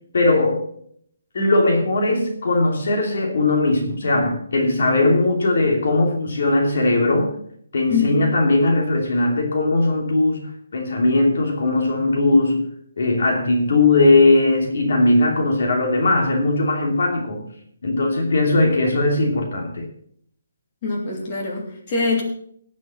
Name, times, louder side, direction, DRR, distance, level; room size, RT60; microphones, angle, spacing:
voice 1, 0.1-0.6 1.3-7.3 7.7-12.7 13.0-17.5 17.8-19.9, left 2 dB, 60° left, 2.7 m, -19 dB
voice 2, 7.9-8.2 20.8-22.2, left 4 dB, 30° left, 3.0 m, -23 dB
18.0 x 6.3 x 5.7 m
hypercardioid pair, 175°, 0 cm